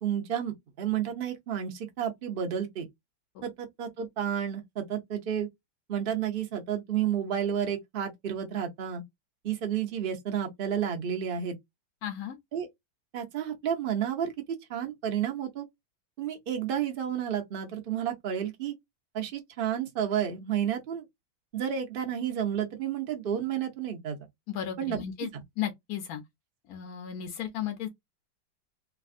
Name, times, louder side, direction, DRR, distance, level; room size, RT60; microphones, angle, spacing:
voice 1, 0.0-2.9 3.4-5.5 5.9-9.0 9.4-11.6 12.5-12.7 13.1-14.3 14.7-15.6 16.2-18.7 19.1-21.0 21.5-24.2 24.8-25.4, right 9 dB, 75° right, 0.5 m, -31 dB
voice 2, 12.0-12.4 24.5-25.3 25.6-26.2 26.7-27.9, left 10 dB, 70° left, 0.9 m, -34 dB
3.3 x 2.3 x 2.4 m
omnidirectional pair, 2.1 m